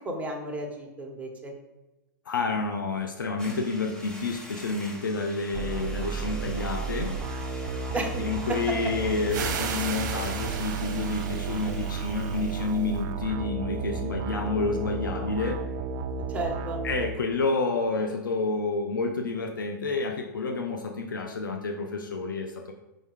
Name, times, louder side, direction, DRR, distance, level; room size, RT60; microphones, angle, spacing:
voice 1, 0.0-1.5 7.9-8.2 8.5-8.8 16.3-16.8, right 2 dB, 15° right, 1 dB, 1.2 m, -32 dB
voice 2, 2.3-7.1 8.2-15.6 16.8-22.7, left 3 dB, 90° left, 4 dB, 0.6 m, -29 dB
sound 1, 3.4-12.6, equal, 5° left, 0.9 m, -45 dB
sound 2, 5.5-17.1, right 5 dB, 40° right, 0.4 m, -33 dB
sound 3, 9.3-13.0, right 7 dB, 60° right, 0.9 m, -36 dB
5.1 x 3.9 x 4.8 m, 1.0 s
hypercardioid pair, 120°, 11 cm